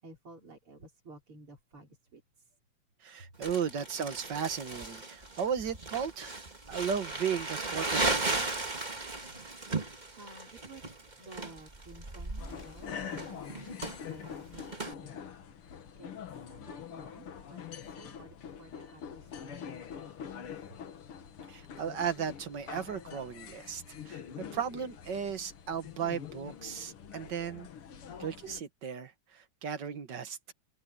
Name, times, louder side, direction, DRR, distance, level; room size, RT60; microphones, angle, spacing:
voice 1, 0.0-2.2 10.1-10.9 11.2-13.7 14.0-15.2 15.9-20.5, right 2 dB, 85° right, 6.1 m, -53 dB
voice 2, 3.0-6.4 6.7-8.5 21.5-27.7 28.2-30.5, right 7 dB, 60° right, 1.9 m, -35 dB
Crumpling crinkling, 3.4-14.9, right 3 dB, 20° right, 2.0 m, -36 dB
sound 1, 12.4-28.6, left 8 dB, 85° left, 2.4 m, -45 dB
omnidirectional pair, 2.3 m